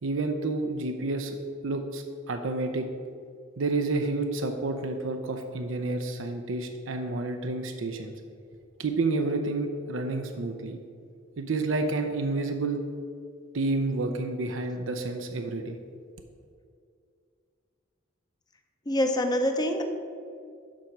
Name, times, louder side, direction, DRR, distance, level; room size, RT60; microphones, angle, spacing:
voice 1, 0.0-1.4 1.6-2.9 3.6-8.1 8.8-10.8 11.4-12.8 13.5-15.8, right 3 dB, 70° right, 5 dB, 0.6 m, -29 dB
voice 2, 18.9-19.8, left 1 dB, 20° left, 5 dB, 0.7 m, -25 dB
7.4 x 5.2 x 6.0 m, 2.3 s
head